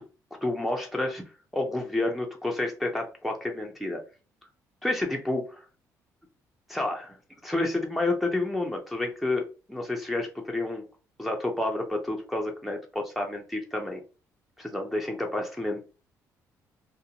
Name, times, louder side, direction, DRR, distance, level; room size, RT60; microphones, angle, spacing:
voice 1, 0.4-1.2 1.5-4.0 4.8-5.6 6.7-7.2 7.4-10.8 11.2-14.0 14.6-15.8, left 2 dB, ahead, 0 dB, 0.5 m, -29 dB
2.5 x 2.1 x 2.8 m, 0.34 s
cardioid pair, 90°, 7 cm